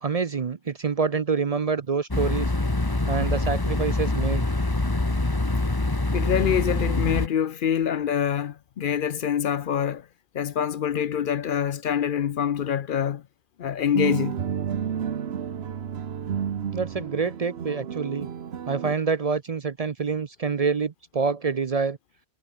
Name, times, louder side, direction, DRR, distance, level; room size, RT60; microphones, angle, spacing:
voice 1, 0.0-2.5 3.1-4.5 16.7-18.3 18.7-22.0, right 5 dB, 40° right, 0.7 m, -26 dB
sound 1, 2.1-7.3, left 2 dB, 20° left, 1.5 m, -25 dB
voice 2, 6.1-10.1 10.3-13.2 13.6-14.4, left 9 dB, 60° left, 0.7 m, -25 dB
sound 2, 13.9-18.9, right 8 dB, 80° right, 1.2 m, -31 dB
omnidirectional pair, 1.0 m